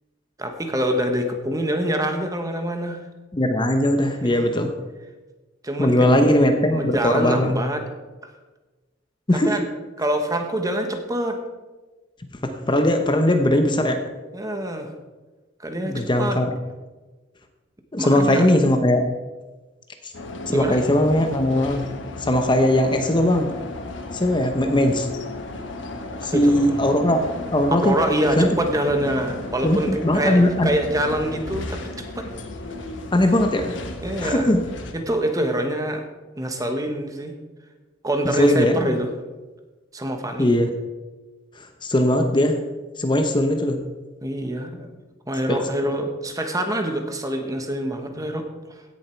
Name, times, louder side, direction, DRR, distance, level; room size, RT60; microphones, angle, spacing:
voice 1, 0.4-3.0 4.2-4.4 5.6-6.1 6.7-7.9 9.3-9.6 10.0-11.4 14.3-14.9 15.6-16.4 18.0-18.5 20.5-20.8 26.3-26.7 27.8-32.3 34.0-34.5 34.9-36.0 36.4-37.3 38.0-39.1 39.9-40.5 44.2-44.9 45.3-48.5, right 1 dB, 20° right, 5 dB, 1.2 m, -25 dB
voice 2, 3.3-4.7 5.8-7.6 9.3-9.6 12.4-14.0 15.8-16.5 17.9-19.0 20.5-21.9 22.2-23.5 24.1-25.1 26.2-27.9 28.4-28.5 29.6-30.7 33.1-33.8 34.2-34.6 38.2-38.9 40.4-40.7 41.8-42.6 43.0-43.8 45.5-45.9, left 1 dB, 25° left, 6 dB, 0.8 m, -19 dB
sound 1, 20.1-34.9, left 2 dB, 75° left, 1.3 m, -34 dB
16.5 x 7.2 x 4.5 m, 1.2 s
head